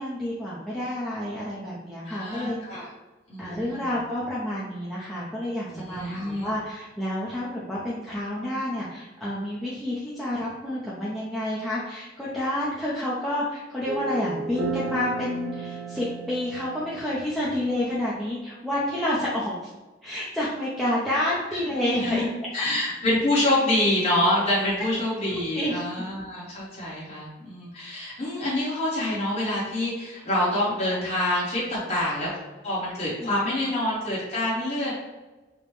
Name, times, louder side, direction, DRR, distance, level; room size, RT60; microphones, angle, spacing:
voice 1, 0.0-2.8 3.4-19.5 20.0-22.2 22.5-22.7 25.5-26.1 33.2-33.4, left 1 dB, ahead, -9 dB, 0.5 m, -29 dB
voice 2, 2.0-2.8 3.3-3.9 5.7-6.5 21.5-22.3 22.5-32.3 32.6-34.9, left 1 dB, 35° left, -8 dB, 1.1 m, -26 dB
sound 1, 13.9-18.3, right 3 dB, 75° right, 0.5 m, -34 dB
4.9 x 2.1 x 3.1 m, 1.2 s
head